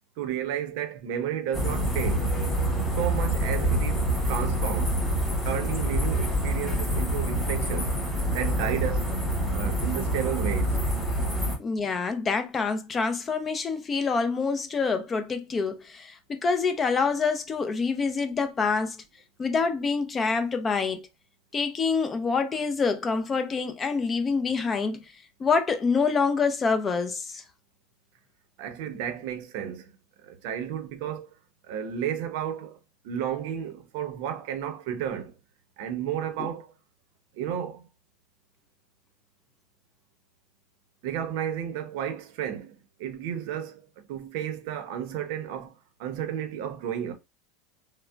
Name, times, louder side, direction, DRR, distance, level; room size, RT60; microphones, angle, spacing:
voice 1, 0.2-2.3 2.9-5.0 5.4-8.0 8.3-9.1 9.5-10.8 28.6-29.9 30.2-31.3 31.7-32.8 33.0-35.3 35.8-36.7 37.4-37.9 41.0-43.8 44.1-45.7 46.0-47.1, right 9 dB, 65° right, 0.6 m, -32 dB
sound 1, 1.5-11.6, equal, 5° left, 1.8 m, -26 dB
voice 2, 11.6-19.0 19.4-21.1 21.5-25.0 25.4-27.4 36.4-36.5, left 4 dB, 25° left, 0.5 m, -26 dB
3.6 x 2.0 x 2.3 m
supercardioid pair, 120°, 0 cm